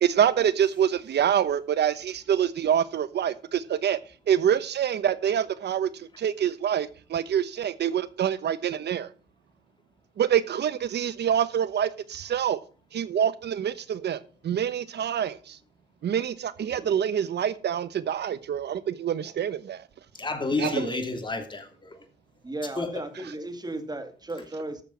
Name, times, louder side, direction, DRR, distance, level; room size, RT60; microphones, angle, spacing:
voice 1, 0.0-4.0 4.3-5.9 6.2-9.1 10.2-12.6 12.9-14.2 14.4-15.3 16.0-19.8 20.6-20.7, right 9 dB, 60° right, 1.0 m, -26 dB
voice 2, 20.2-22.0 22.8-22.9, left 3 dB, 25° left, 2.8 m, -30 dB
voice 3, 22.4-24.8, right 2 dB, 20° right, 2.3 m, -36 dB
13.0 x 6.9 x 5.7 m
cardioid pair, 90°, 20 cm